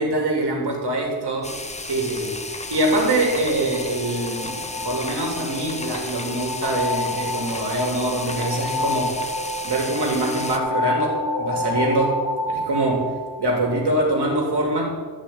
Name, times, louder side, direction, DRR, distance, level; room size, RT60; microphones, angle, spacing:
voice 1, 0.0-1.6 1.8-9.2 9.6-12.2 12.5-13.1 13.4-15.0, right 1 dB, 70° right, -1 dB, 3.0 m, -24 dB
sound 1, 1.4-10.6, left 2 dB, 15° left, 0.8 m, -34 dB
sound 2, 2.4-14.1, left 2 dB, 50° left, 2.3 m, -29 dB
13.0 x 6.1 x 8.5 m, 1.5 s
wide cardioid pair, 165°, 42 cm